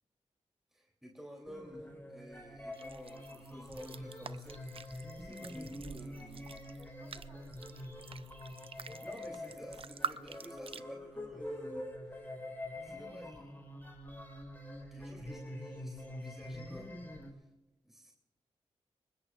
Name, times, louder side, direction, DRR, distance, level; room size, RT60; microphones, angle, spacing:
voice 1, 0.7-6.5 8.7-11.9 12.8-13.5 14.9-16.9 17.3-17.5 17.8-18.1, equal, 5° right, 0 dB, 3.2 m, -51 dB
sound 1, 1.5-17.3, left 1 dB, 15° left, 4.2 m, -46 dB
sound 2, 2.7-10.8, right 5 dB, 50° right, 0.6 m, -46 dB
voice 2, 6.8-8.3 8.8-9.5, right 1 dB, 35° right, 2 dB, 5.5 m, -61 dB
21.0 x 20.5 x 2.5 m, 1.1 s
cardioid pair, 55°, 12 cm